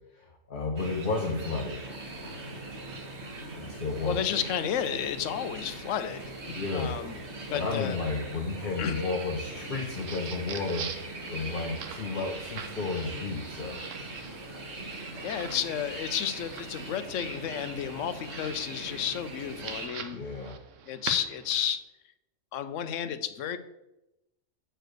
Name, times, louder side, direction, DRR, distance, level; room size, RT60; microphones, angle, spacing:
voice 1, 0.1-1.8 3.6-4.2 6.5-6.9 7.5-13.8 20.1-20.6, left 3 dB, 50° left, 1 dB, 0.9 m, -32 dB
sound 1, 0.8-19.9, right 2 dB, 65° right, 1.6 m, -41 dB
sound 2, 1.9-17.0, right 3 dB, 30° right, 0.9 m, -55 dB
voice 2, 4.0-7.2 7.5-8.0 8.8-9.0 15.0-20.2 20.9-21.8 22.5-23.6, left 9 dB, 85° left, 11 dB, 1.0 m, -32 dB
sound 3, 9.7-21.7, right 7 dB, 90° right, 1.1 m, -45 dB
6.7 x 4.5 x 6.4 m, 0.91 s
omnidirectional pair, 1.3 m